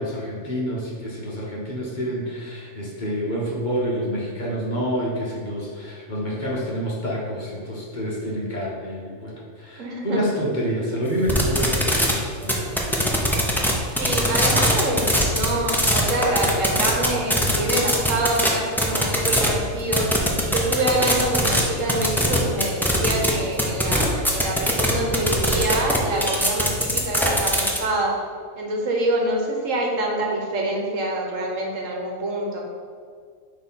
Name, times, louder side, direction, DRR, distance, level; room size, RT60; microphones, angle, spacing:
voice 1, 0.0-12.8 14.0-14.2, equal, 35° left, -4 dB, 1.1 m, -28 dB
voice 2, 9.8-10.2 12.0-12.1 14.0-20.1 20.5-28.1 28.6-32.6, right 1 dB, 70° right, 0 dB, 1.3 m, -26 dB
sound 1, 11.3-12.1 12.4-13.7 14.0-18.5 18.8-19.5 19.9-21.6 21.9-23.3 23.6-27.8, equal, 5° left, 0.4 m, -20 dB
6.2 x 3.2 x 5.5 m, 2.1 s
omnidirectional pair, 1.4 m